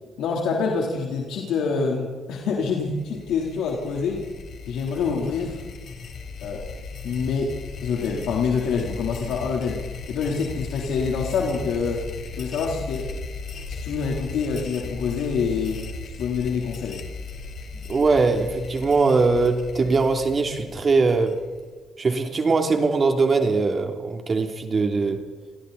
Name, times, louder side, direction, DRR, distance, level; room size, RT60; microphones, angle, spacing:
voice 1, 0.2-4.2 4.7-5.6 6.4-6.6 7.0-9.8 10.1-12.0 12.4-13.1 13.7-17.0, left 5 dB, 85° left, -1 dB, 3.6 m, -26 dB
sound 1, 2.6-21.7, left 4 dB, 60° left, 3.3 m, -37 dB
voice 2, 17.9-21.4 22.0-25.2, right 3 dB, 40° right, 5 dB, 3.1 m, -21 dB
28.0 x 22.5 x 4.2 m, 1.4 s
cardioid pair, 90°, 0 cm